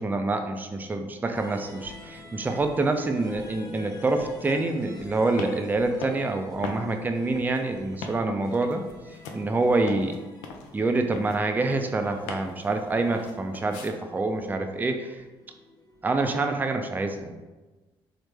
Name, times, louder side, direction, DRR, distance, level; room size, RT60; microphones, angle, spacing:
voice 1, 0.0-8.8 9.3-10.2 10.7-15.2 16.0-17.3, right 2 dB, 15° right, 5 dB, 0.3 m, -26 dB
sound 1, 1.3-17.1, left 2 dB, 35° left, 0.9 m, -47 dB
sound 2, 5.0-13.9, left 4 dB, 90° left, 0.4 m, -41 dB
3.2 x 2.0 x 3.2 m, 1.2 s
supercardioid pair, 65°, 11 cm